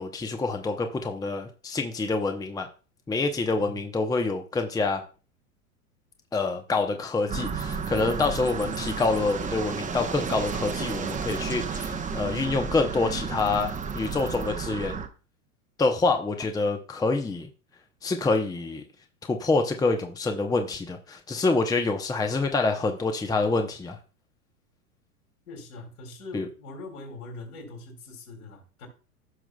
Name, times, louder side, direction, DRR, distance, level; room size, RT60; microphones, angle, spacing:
voice 1, 0.0-2.7 3.1-5.0 6.3-15.0 15.8-17.5 18.0-18.8 19.3-24.0 26.3-26.5, left 3 dB, 10° left, 5 dB, 0.8 m, -26 dB
sound 1, 7.3-15.1, right 5 dB, 15° right, 1.0 m, -32 dB
voice 2, 25.5-28.9, left 2 dB, 70° left, 1 dB, 4.0 m, -42 dB
15.5 x 6.0 x 2.3 m, 0.36 s
hypercardioid pair, 100°, 45 cm